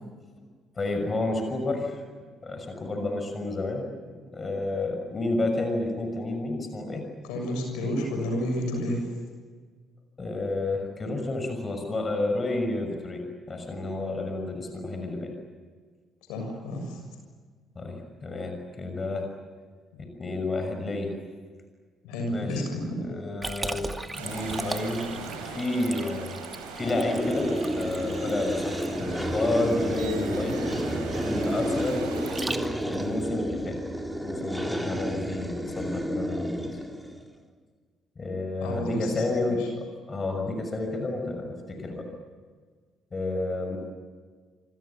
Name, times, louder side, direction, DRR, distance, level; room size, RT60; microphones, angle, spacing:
voice 1, 0.8-2.0 2.4-7.0 10.2-15.3 17.7-19.3 20.0-21.2 22.3-22.6 23.0-26.4 26.8-30.8 31.3-32.1 32.9-33.8 34.2-36.8 38.2-42.1 43.1-43.8, left 2 dB, 30° left, 5 dB, 6.3 m, -30 dB
voice 2, 7.2-9.1 16.3-17.0 19.9-20.0 22.0-23.1 38.6-39.2 39.6-39.7, left 1 dB, 70° left, 3 dB, 6.8 m, -30 dB
Liquid, 23.4-33.1, right 2 dB, 20° right, 2.5 m, -38 dB
sound 1, 24.1-32.4, right 5 dB, 70° right, 4.7 m, -40 dB
sound 2, 26.8-37.2, equal, ahead, 4.0 m, -30 dB
28.0 x 25.5 x 7.3 m, 1.5 s
figure-of-eight pair, 45°, 0 cm